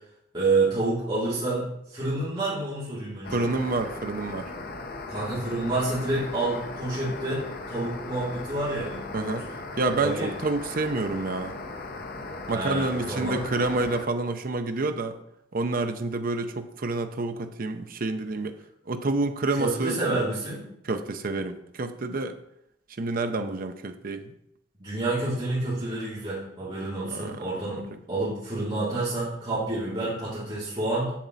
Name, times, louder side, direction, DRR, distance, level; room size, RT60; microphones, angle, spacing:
voice 1, 0.3-3.5 5.1-9.4 10.0-10.3 12.5-13.4 19.6-20.7 24.8-31.1, right 2 dB, 25° right, -11 dB, 3.0 m, -28 dB
sound 1, 3.2-14.0, left 2 dB, 50° left, 0.8 m, -38 dB
voice 2, 3.3-4.5 9.1-9.5 9.8-11.5 12.5-15.2 15.5-18.6 18.9-20.2 20.8-22.4 23.0-24.3 27.1-27.5, right 3 dB, 50° right, 8 dB, 0.6 m, -28 dB
7.3 x 7.2 x 4.0 m, 0.80 s
head